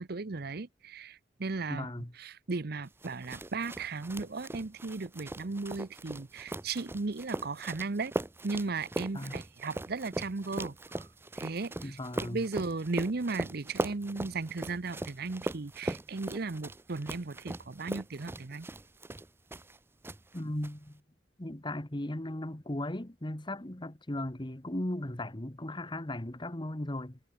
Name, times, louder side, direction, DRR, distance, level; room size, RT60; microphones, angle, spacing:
voice 1, 0.0-1.9 2.2-8.1 8.4-11.1 11.3-18.7, right 3 dB, 60° right, 0.8 m, -36 dB
voice 2, 1.7-2.1 9.1-9.4 11.8-12.4 20.3-21.0 21.4-27.2, left 1 dB, 25° left, 1.5 m, -37 dB
sound 1, 3.0-19.8 20.0-20.7, right 1 dB, 15° right, 0.5 m, -40 dB
head